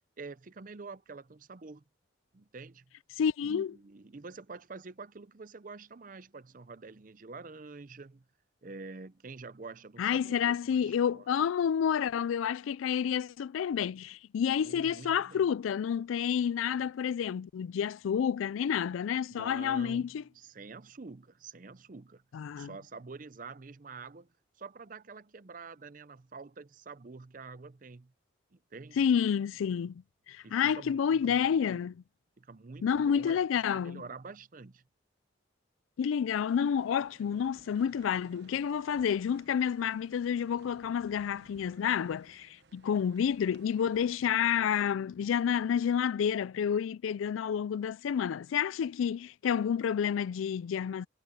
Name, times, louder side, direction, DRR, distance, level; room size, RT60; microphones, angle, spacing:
voice 1, 0.2-1.8 2.3-2.8 3.4-8.2 8.6-11.3 14.6-15.5 19.3-22.2 22.6-24.3 24.6-28.1 28.5-29.1 30.4-31.8 32.4-33.4 33.7-34.8, right 4 dB, 40° right, 0.6 m, -47 dB
voice 2, 3.2-3.7 10.0-20.2 22.3-22.7 29.0-31.9 32.8-34.0 36.0-51.1, left 8 dB, 90° left, 0.3 m, -29 dB
sound 1, 36.5-44.2, right 3 dB, 60° right, 1.1 m, -60 dB
head